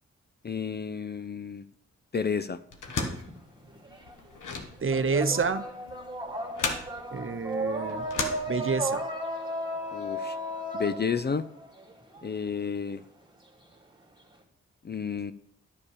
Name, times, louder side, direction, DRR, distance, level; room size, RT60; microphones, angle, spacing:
voice 1, 0.4-1.6 2.1-2.6 9.9-10.4 10.7-11.5 12.2-13.0 14.8-15.3, left 6 dB, 35° left, 13 dB, 0.5 m, -31 dB
sound 1, 2.7-9.0, left 4 dB, 80° left, 1.2 m, -36 dB
sound 2, 2.9-4.1 4.4-12.2, equal, 15° right, 2.0 m, -34 dB
voice 2, 4.8-5.6 7.1-8.0 8.5-9.0, right 5 dB, 45° right, 12 dB, 0.8 m, -28 dB
9.8 x 7.0 x 4.9 m, 0.72 s
cardioid pair, 45°, 30 cm